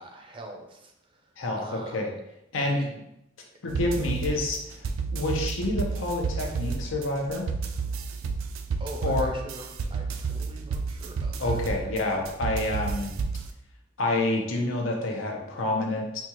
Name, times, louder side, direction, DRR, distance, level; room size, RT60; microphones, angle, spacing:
voice 1, 0.0-2.2 2.6-3.0 8.8-11.6 12.1-12.2, right 1 dB, 25° right, 2 dB, 0.5 m, -44 dB
voice 2, 3.6-4.9 5.1-7.4 9.0-9.3 11.4-13.1 14.0-16.2, left 2 dB, 80° left, 1 dB, 0.7 m, -28 dB
sound 1, 3.7-13.5, right 5 dB, 90° right, 0.4 m, -31 dB
4.2 x 2.3 x 2.9 m, 0.83 s
head